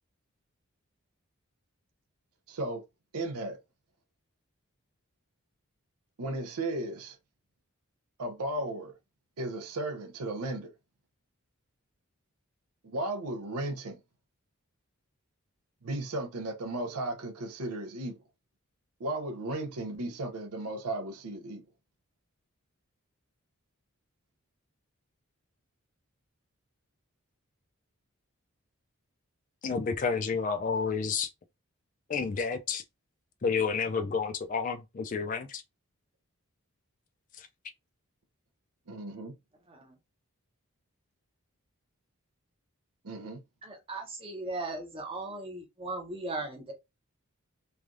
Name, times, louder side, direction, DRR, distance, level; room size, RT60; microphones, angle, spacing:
voice 1, 2.5-2.8 3.1-3.6 6.2-7.2 8.2-8.9 9.4-10.7 12.8-14.0 15.8-18.2 19.0-21.6 38.9-39.3 43.0-43.4, right 2 dB, 90° right, 0.6 m, -35 dB
voice 2, 29.6-31.3 32.1-32.8 33.4-35.6 37.4-37.5, left 5 dB, 35° left, 0.3 m, -30 dB
voice 3, 43.6-46.7, right 2 dB, 25° right, 0.7 m, -38 dB
3.2 x 2.3 x 2.5 m
head